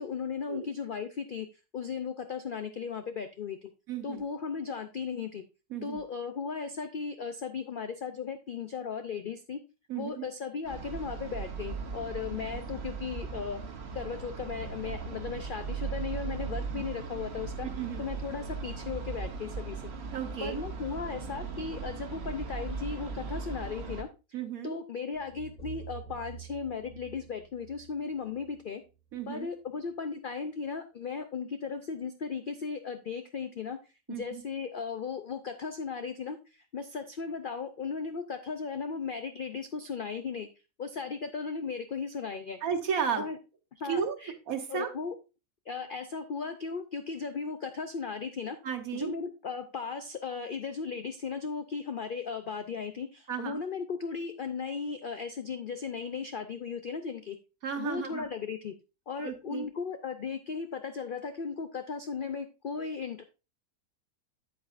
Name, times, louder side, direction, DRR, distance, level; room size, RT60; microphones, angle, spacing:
voice 1, 0.0-1.5 1.7-3.7 4.0-5.4 5.8-9.6 9.9-13.6 13.9-17.7 18.0-19.9 20.4-24.1 24.6-28.8 29.3-33.8 34.1-40.5 40.8-42.6 43.1-43.4 43.8-44.3 44.7-45.2 45.7-48.6 48.9-57.4 57.8-58.7 59.1-63.2, left 5 dB, 70° left, 8 dB, 0.5 m, -36 dB
voice 2, 3.9-4.2 5.7-6.0 9.9-10.2 16.7-16.9 17.7-18.0 20.1-20.6 24.3-24.8 29.1-29.5 34.1-34.4 42.6-43.2 43.8-44.2 44.5-44.9 48.6-49.1 53.3-53.6 57.6-58.3 59.2-59.7, right 7 dB, 65° right, 6 dB, 1.5 m, -33 dB
sound 1, 10.6-24.0, right 5 dB, 45° right, 1.1 m, -38 dB
sound 2, 25.1-29.3, right 9 dB, 30° left, 1.8 m, -48 dB
8.7 x 8.1 x 2.5 m, 0.29 s
omnidirectional pair, 1.7 m